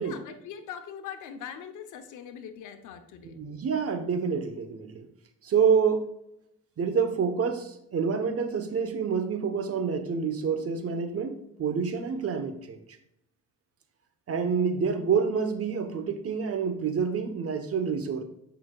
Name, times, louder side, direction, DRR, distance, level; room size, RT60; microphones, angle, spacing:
voice 1, 0.0-3.4, left 8 dB, 85° left, 8 dB, 0.9 m, -42 dB
voice 2, 3.2-5.1 5.4-6.1 6.8-12.8 14.3-18.2, right 6 dB, 50° right, 7 dB, 1.1 m, -27 dB
8.8 x 5.7 x 2.4 m, 0.79 s
cardioid pair, 90°, 30 cm